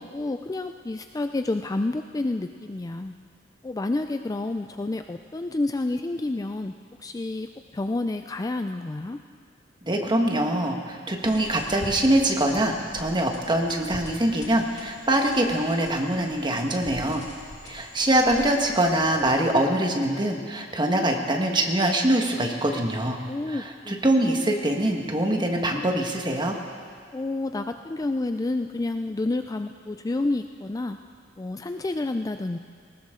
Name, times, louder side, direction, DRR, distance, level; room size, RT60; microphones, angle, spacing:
voice 1, 0.0-3.1 3.6-6.7 7.0-7.5 7.7-9.2 23.3-23.9 24.2-24.3 27.1-31.0 31.4-32.6, left 2 dB, 20° left, 7 dB, 0.4 m, -29 dB
voice 2, 9.8-17.2 17.6-23.2 23.5-26.5, right 1 dB, 25° right, 2 dB, 1.5 m, -24 dB
sound 1, 11.2-19.6, left 1 dB, 40° left, 2.5 m, -44 dB
19.5 x 19.0 x 3.8 m, 2.1 s
head